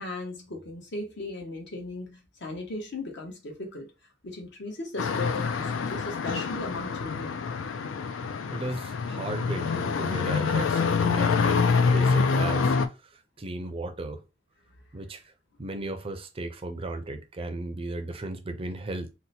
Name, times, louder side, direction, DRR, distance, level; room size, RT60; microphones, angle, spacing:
voice 1, 0.0-3.9 4.2-7.4, left 2 dB, 65° left, 1.0 m, -37 dB
sound 1, 5.0-12.9, left 5 dB, 85° left, 0.4 m, -26 dB
voice 2, 8.5-12.8 13.1-14.2 14.9-15.3 15.6-19.1, right 2 dB, 30° right, 0.4 m, -35 dB
2.8 x 2.1 x 4.1 m
head